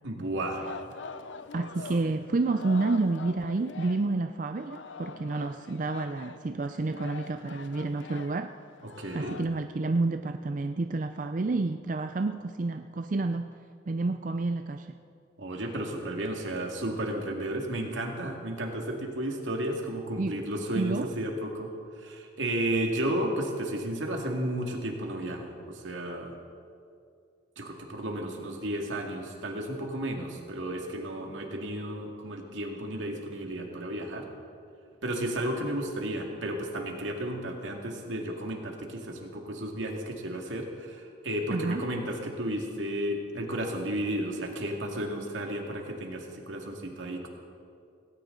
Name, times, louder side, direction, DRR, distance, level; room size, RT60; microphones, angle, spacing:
voice 1, 0.0-0.6 9.0-9.4 15.4-21.7 22.0-26.3 27.6-34.2 35.0-47.3, right 1 dB, 85° right, 1 dB, 2.2 m, -33 dB
Singing, 0.6-4.2 4.5-9.4, left 4 dB, 75° left, 0.7 m, -44 dB
voice 2, 1.5-8.5 9.1-13.5 13.9-14.9 20.2-20.4 20.8-21.1 41.5-41.8, right 3 dB, 40° right, 7 dB, 0.4 m, -29 dB
18.0 x 17.0 x 3.9 m, 2.4 s
head